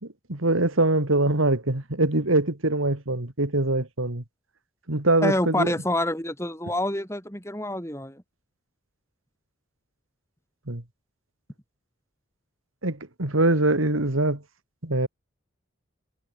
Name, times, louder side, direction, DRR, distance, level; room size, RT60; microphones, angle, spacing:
voice 1, 0.0-4.2 4.9-5.7 10.7-10.8 12.8-14.4 14.8-15.1, right 2 dB, 85° right, 2.9 m, -23 dB
voice 2, 5.2-8.2, left 1 dB, 15° left, 7.0 m, -27 dB
head